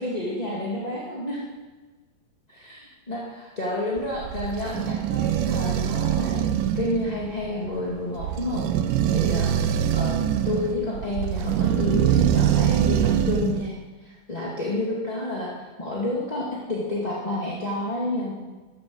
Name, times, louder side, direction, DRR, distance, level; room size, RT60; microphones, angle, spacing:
voice 1, 0.0-1.4 2.5-6.5 6.7-8.6 9.1-13.7 14.0-15.5 15.8-18.3, left 1 dB, 15° left, -5 dB, 1.8 m, -30 dB
sound 1, 4.0-13.7, right 10 dB, 75° right, 2.3 m, -24 dB
13.5 x 12.0 x 7.9 m, 1.3 s
omnidirectional pair, 4.1 m